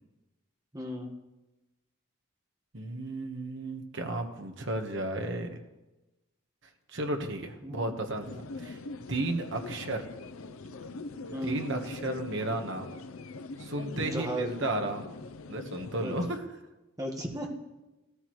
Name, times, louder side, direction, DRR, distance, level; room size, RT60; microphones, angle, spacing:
voice 1, 0.7-1.1 7.6-8.0 11.3-11.6 13.9-14.6 16.0-16.1 17.0-17.5, equal, 15° right, 1 dB, 1.5 m, -35 dB
voice 2, 2.7-5.6 6.9-8.8 9.1-10.0 11.4-12.9 13.6-16.4, right 2 dB, 60° right, 4 dB, 1.4 m, -33 dB
sound 1, 8.2-16.4, left 3 dB, 80° left, 0.6 m, -43 dB
16.0 x 13.0 x 3.2 m, 1.0 s
head